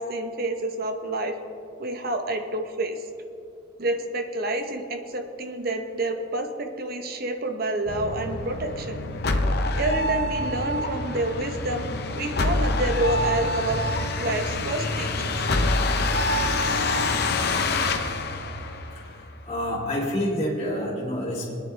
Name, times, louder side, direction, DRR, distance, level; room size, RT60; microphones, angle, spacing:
voice 1, 0.0-1.4 1.8-3.0 3.8-9.0 9.7-11.9 12.2-13.8 14.2-15.4, right 1 dB, 50° right, 5 dB, 1.1 m, -28 dB
sound 1, 7.9-19.3, left 2 dB, 55° left, 0.9 m, -26 dB
voice 2, 18.9-21.5, equal, 35° left, -4 dB, 3.1 m, -28 dB
20.5 x 10.0 x 3.4 m, 2.7 s
head